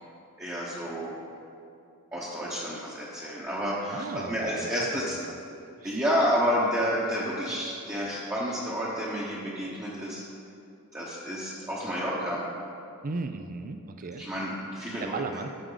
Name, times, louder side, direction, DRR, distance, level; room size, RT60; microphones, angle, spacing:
voice 1, 0.4-1.1 2.1-5.2 5.8-10.2 10.9-12.5 14.2-15.2, equal, 15° right, -7 dB, 1.0 m, -30 dB
voice 2, 3.9-4.9 5.8-6.0 13.0-14.2 15.0-15.5, right 3 dB, 40° right, 7 dB, 0.4 m, -35 dB
13.0 x 6.2 x 4.0 m, 2.6 s
head